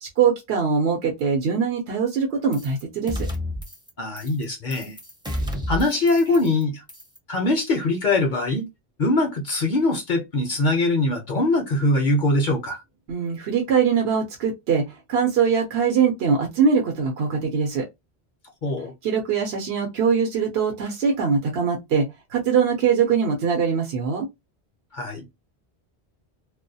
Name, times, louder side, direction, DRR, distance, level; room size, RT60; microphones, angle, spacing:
voice 1, 0.0-3.3 13.1-17.9 19.0-24.3, right 6 dB, 75° right, 0.9 m, -22 dB
sound 1, 2.5-2.8 3.1-3.9 4.2-4.4 4.7-6.6 6.9-7.2, left 1 dB, 5° right, 0.5 m, -31 dB
voice 2, 4.0-5.0 5.7-6.8 7.3-8.7 9.0-12.8 18.6-18.9 24.9-25.2, left 2 dB, 50° left, 0.7 m, -22 dB
2.3 x 2.2 x 2.6 m
omnidirectional pair, 1.1 m